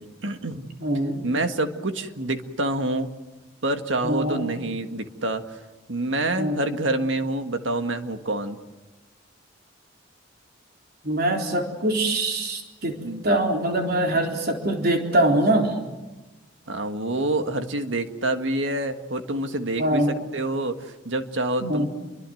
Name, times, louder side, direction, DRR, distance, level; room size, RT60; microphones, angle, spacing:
voice 1, 0.2-0.7 1.2-3.1 3.6-5.6 5.9-8.6 13.0-13.3 16.7-21.9, right 2 dB, 75° right, 7 dB, 1.8 m, -27 dB
voice 2, 0.8-1.2 4.0-4.5 6.4-6.6 11.0-13.0 13.2-15.7 19.8-20.2 21.6-21.9, right 1 dB, 55° right, 2 dB, 3.8 m, -23 dB
29.0 x 24.0 x 7.9 m, 1.1 s
head